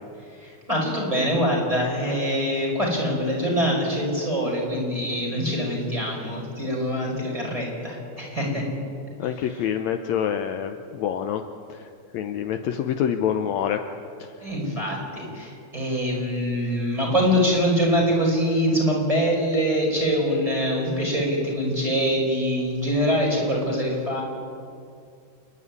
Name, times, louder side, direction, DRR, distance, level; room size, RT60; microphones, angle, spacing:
voice 1, 0.4-8.6 14.4-24.2, equal, 10° right, -2 dB, 5.5 m, -24 dB
voice 2, 9.2-11.4 11.7-11.9 12.1-13.8 14.2-14.3, left 9 dB, 75° left, 7 dB, 1.9 m, -26 dB
28.5 x 11.0 x 9.6 m, 2.4 s
omnidirectional pair, 3.6 m